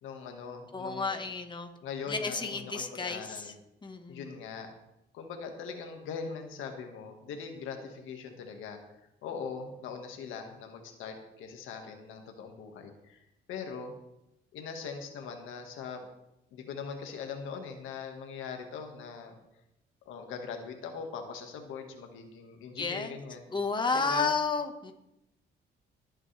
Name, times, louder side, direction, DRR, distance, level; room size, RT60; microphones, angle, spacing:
voice 1, 0.0-1.2 1.8-3.5 4.1-4.7 5.1-13.9 14.5-16.1 16.5-19.3 20.0-23.5 23.9-24.3, left 5 dB, 90° left, 4 dB, 1.8 m, -41 dB
voice 2, 0.7-1.7 2.1-3.5 3.8-4.3 22.8-23.2 23.5-24.9, left 4 dB, 25° left, 5 dB, 1.5 m, -32 dB
21.0 x 8.8 x 3.4 m, 0.86 s
cardioid pair, 90°, 20 cm